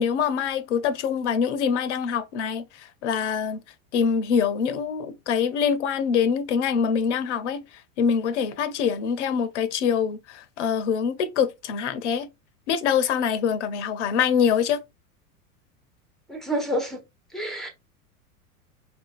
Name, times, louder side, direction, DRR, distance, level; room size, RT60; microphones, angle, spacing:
voice 1, 0.0-3.6 3.9-7.6 8.0-12.3 12.7-14.8, left 7 dB, 50° left, 0.6 m, -24 dB
voice 2, 16.3-17.0 17.3-17.7, equal, ahead, 0.6 m, -28 dB
4.8 x 2.5 x 2.3 m
figure-of-eight pair, 85°, 45 cm